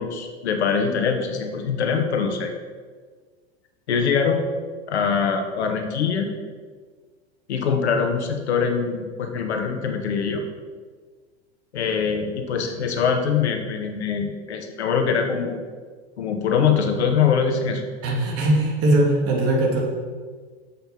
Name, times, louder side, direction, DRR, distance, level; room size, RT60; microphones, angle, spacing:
voice 1, 0.0-2.5 3.9-4.4 4.9-6.3 7.5-10.4 11.7-15.6 16.2-17.8, left 6 dB, 80° left, 5 dB, 1.3 m, -23 dB
voice 2, 18.0-19.8, right 1 dB, 45° right, 0 dB, 2.5 m, -20 dB
7.7 x 5.7 x 5.6 m, 1.5 s
hypercardioid pair, 95°, 32 cm